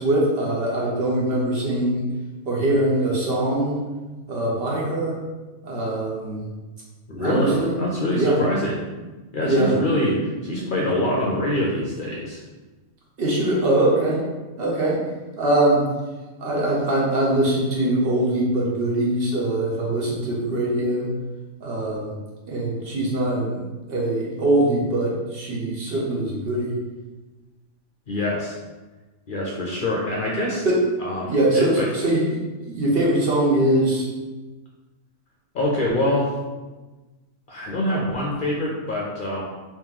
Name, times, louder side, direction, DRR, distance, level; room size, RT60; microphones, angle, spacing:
voice 1, 0.0-2.0 2.5-3.8 4.3-5.2 5.6-6.4 7.2-7.7 8.1-8.4 9.4-9.7 13.2-14.2 14.6-15.0 15.4-15.8 16.4-21.1 21.6-22.1 22.5-23.6 23.9-26.7 30.6-30.8 31.3-32.2 32.6-34.1, right 1 dB, 55° right, -4 dB, 0.9 m, -22 dB
voice 2, 7.1-8.8 9.3-12.4 28.1-28.6 29.3-30.7 31.0-31.9 35.5-36.3 37.5-39.4, left 1 dB, 55° left, -3 dB, 0.6 m, -24 dB
3.0 x 2.9 x 3.7 m, 1.2 s
omnidirectional pair, 1.3 m